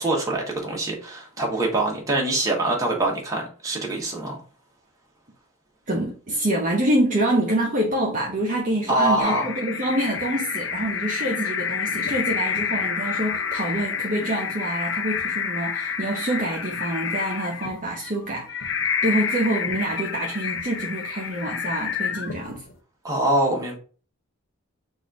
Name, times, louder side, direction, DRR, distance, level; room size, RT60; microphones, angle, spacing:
voice 1, 0.0-4.4 8.9-9.5 23.0-23.8, right 1 dB, 15° right, 1.2 m, -24 dB
voice 2, 5.9-18.6 19.0-22.6, right 1 dB, 35° right, 0.8 m, -26 dB
sound 1, 9.2-22.7, left 6 dB, 60° left, 0.7 m, -29 dB
4.0 x 2.6 x 4.6 m
head